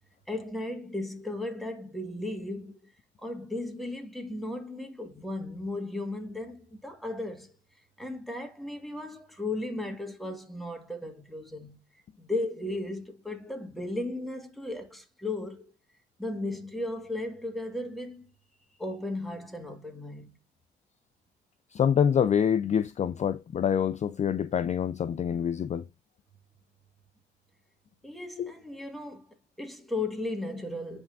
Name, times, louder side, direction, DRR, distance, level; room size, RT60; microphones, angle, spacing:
voice 1, 0.3-2.8 3.2-7.5 8.0-11.8 12.2-15.7 16.2-18.3 18.8-20.4 28.0-29.3 29.6-31.0, left 2 dB, ahead, 1.6 m, -35 dB
voice 2, 21.8-25.8 28.4-28.5, left 8 dB, 35° left, 0.3 m, -26 dB
10.5 x 3.6 x 2.5 m
cardioid pair, 90°, 20 cm